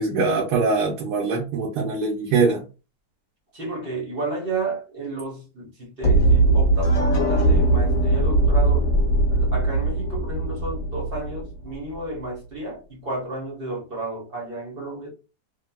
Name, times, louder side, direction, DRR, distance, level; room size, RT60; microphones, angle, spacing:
voice 1, 0.0-2.6, right 4 dB, 75° right, 1.2 m, -22 dB
voice 2, 3.5-8.9 9.3-15.1, right 2 dB, 40° right, 0.9 m, -32 dB
sound 1, 6.0-12.0, right 2 dB, 25° left, 1.0 m, -20 dB
3.6 x 2.3 x 2.2 m
omnidirectional pair, 1.8 m